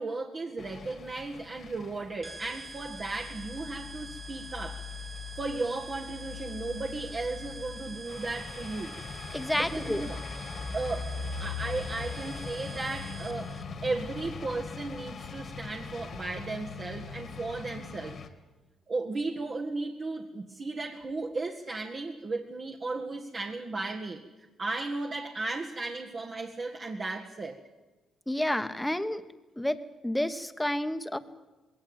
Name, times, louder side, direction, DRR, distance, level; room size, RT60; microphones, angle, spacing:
voice 1, 0.0-4.8 5.4-8.9 9.5-10.2 10.7-13.6 13.8-18.2 18.9-24.2 24.6-27.6, right 3 dB, 45° right, 0 dB, 1.7 m, -35 dB
sound 1, 0.6-18.3, left 5 dB, 55° left, 2.2 m, -41 dB
sound 2, 2.2-13.6, right 3 dB, 25° right, 2.1 m, -46 dB
voice 2, 9.3-10.1 28.3-29.2 29.6-31.2, left 1 dB, 5° left, 11 dB, 1.3 m, -30 dB
20.5 x 18.0 x 9.0 m, 1.1 s
cardioid pair, 80°, 0 cm